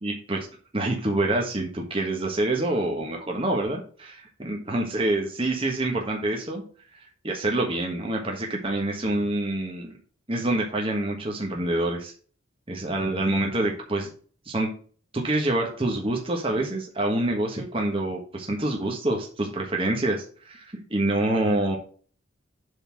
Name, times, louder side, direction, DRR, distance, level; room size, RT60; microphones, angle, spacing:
voice 1, 0.0-0.4 0.7-6.6 7.2-10.0 10.3-12.1 12.7-14.1 14.4-14.7 15.1-21.8, right 1 dB, 25° right, 0 dB, 1.3 m, -26 dB
7.9 x 4.1 x 6.0 m, 0.43 s
head